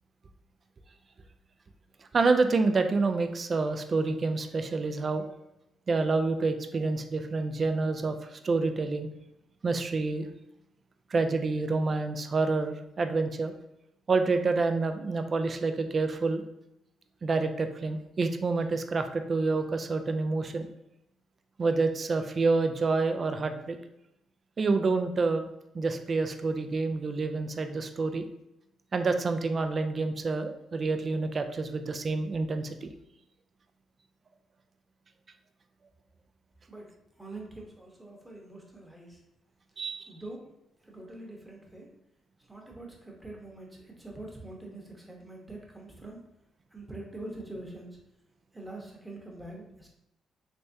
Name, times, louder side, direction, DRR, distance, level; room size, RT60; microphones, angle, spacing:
voice 1, 2.1-5.3 5.9-9.1 9.6-10.3 11.1-13.5 14.1-16.4 17.2-20.7 21.6-23.8 24.6-25.5 25.7-28.2 28.9-32.9 39.8-40.1, right 3 dB, 40° right, 7 dB, 0.4 m, -28 dB
voice 2, 37.2-39.2 40.1-40.4 40.8-41.9 42.5-46.2 46.7-48.0 48.5-49.9, right 2 dB, 10° right, -1 dB, 0.9 m, -44 dB
3.3 x 3.2 x 2.7 m, 0.85 s
cardioid pair, 90°, 0 cm